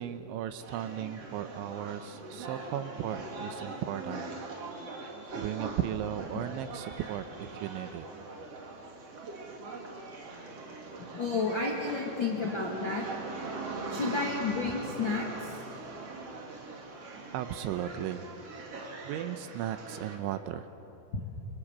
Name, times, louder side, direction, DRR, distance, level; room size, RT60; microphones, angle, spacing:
voice 1, 0.0-4.3 5.0-8.1 17.3-18.3 19.0-20.7, right 11 dB, 80° right, 10 dB, 3.0 m, -36 dB
sound 1, 0.6-20.2, right 3 dB, 40° right, 2.5 m, -41 dB
voice 2, 11.0-13.0 13.9-15.2 21.1-21.2, left 4 dB, 50° left, -2 dB, 1.5 m, -31 dB
27.5 x 24.5 x 7.4 m, 3.0 s
omnidirectional pair, 5.7 m